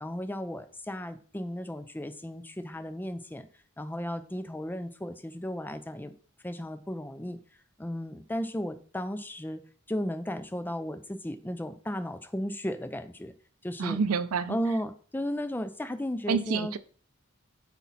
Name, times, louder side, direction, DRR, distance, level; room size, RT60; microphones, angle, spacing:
voice 1, 0.0-3.5 3.8-6.1 6.4-7.4 7.8-9.6 9.9-13.3 13.6-14.0 14.5-16.7, equal, 10° left, 11 dB, 0.5 m, -34 dB
voice 2, 13.8-14.6 16.3-16.8, right 5 dB, 85° right, 13 dB, 0.5 m, -28 dB
8.2 x 4.3 x 4.1 m, 0.43 s
head